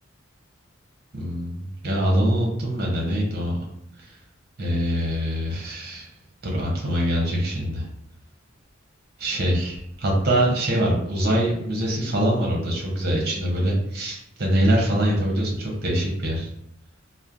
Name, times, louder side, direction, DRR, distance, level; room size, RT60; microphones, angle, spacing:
voice 1, 1.1-3.6 4.0-4.2 4.6-6.1 6.4-7.9 9.2-16.5, equal, 50° right, -1 dB, 0.8 m, -24 dB
3.1 x 2.1 x 2.4 m, 0.76 s
head